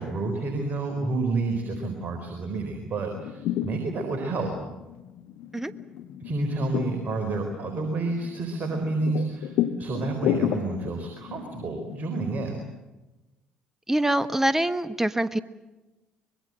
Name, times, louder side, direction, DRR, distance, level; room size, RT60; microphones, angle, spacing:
voice 1, 0.0-4.5 6.2-12.6, right 3 dB, 40° right, 4 dB, 4.2 m, -29 dB
sound 1, 2.9-12.8, left 11 dB, 60° left, 1.1 m, -33 dB
voice 2, 13.9-15.4, right 1 dB, 10° right, 13 dB, 1.3 m, -24 dB
24.5 x 22.0 x 7.6 m, 1.1 s
figure-of-eight pair, 50°, 4 cm